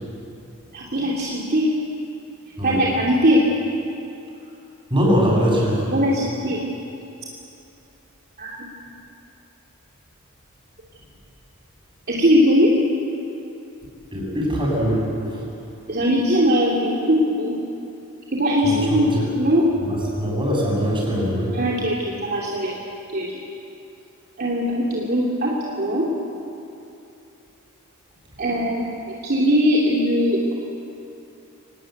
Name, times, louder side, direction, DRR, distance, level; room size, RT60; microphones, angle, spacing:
voice 1, 0.7-1.7 2.6-3.4 5.9-6.6 8.4-8.6 12.1-12.7 15.9-17.6 18.3-19.1 19.3-19.7 21.5-22.7 23.1-23.3 24.4-26.1 28.4-30.5, equal, 45° right, -4 dB, 2.7 m, -20 dB
voice 2, 4.9-5.9 14.1-15.4 18.6-19.2 19.9-21.5, equal, 25° right, -3 dB, 7.5 m, -22 dB
24.5 x 19.0 x 9.4 m, 2.8 s
head